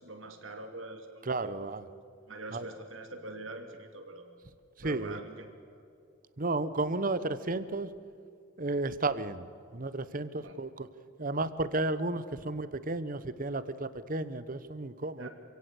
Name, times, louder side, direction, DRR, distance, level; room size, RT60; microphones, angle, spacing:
voice 1, 0.0-1.7 2.3-4.4 4.8-5.5 5.7-5.8 10.4-10.5 15.2-15.3, right 2 dB, 70° right, 6 dB, 2.9 m, -44 dB
voice 2, 1.2-1.9 2.5-2.7 4.8-5.2 6.4-7.9 8.6-9.5 9.7-10.9 11.2-15.3, right 2 dB, 40° right, 14 dB, 1.0 m, -33 dB
27.5 x 17.0 x 8.3 m, 2.4 s
head